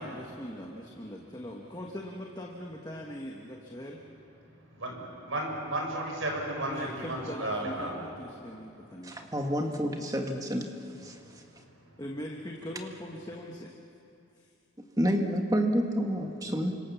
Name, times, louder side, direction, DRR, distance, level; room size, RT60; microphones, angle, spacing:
voice 1, 0.0-4.0 6.6-9.3 12.0-13.7, equal, 20° left, 0 dB, 1.5 m, -41 dB
voice 2, 4.7-7.9, right 1 dB, 70° right, 1 dB, 6.3 m, -33 dB
voice 3, 9.0-10.7 11.0-11.2 15.0-16.7, equal, 15° right, 3 dB, 1.8 m, -29 dB
30.0 x 25.5 x 7.3 m, 2.7 s
head